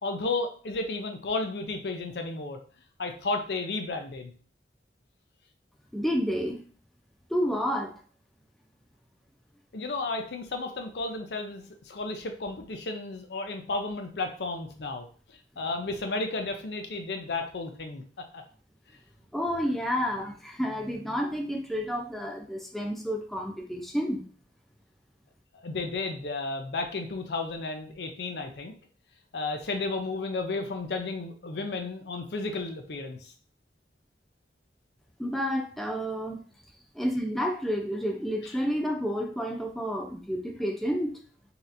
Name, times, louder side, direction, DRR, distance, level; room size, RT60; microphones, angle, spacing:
voice 1, 0.0-2.6 3.0-4.3 9.7-15.1 15.6-18.4 25.6-28.7 29.3-33.3 38.4-38.5, left 3 dB, 70° left, 5 dB, 0.6 m, -33 dB
voice 2, 5.9-6.6 7.3-8.0 19.3-24.2 35.2-36.4 37.0-41.2, equal, ahead, 2 dB, 0.4 m, -30 dB
4.1 x 2.8 x 2.6 m, 0.43 s
head